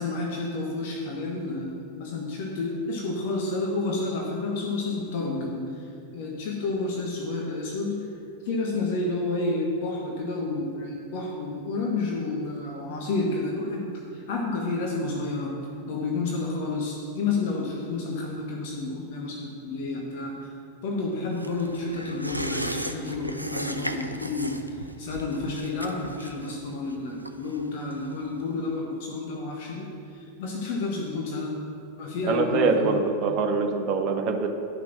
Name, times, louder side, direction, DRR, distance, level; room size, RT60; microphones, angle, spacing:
voice 1, 0.0-8.1 8.4-15.6 15.9-20.5 20.8-31.6 32.0-33.0, left 3 dB, 50° left, -1 dB, 1.4 m, -30 dB
sound 1, 21.4-28.4 28.7-28.8, right 1 dB, 90° right, 0.6 m, -36 dB
voice 2, 32.3-34.5, right 4 dB, 35° right, 4 dB, 1.2 m, -24 dB
12.0 x 6.1 x 6.0 m, 2.5 s
figure-of-eight pair, 90°, 0 cm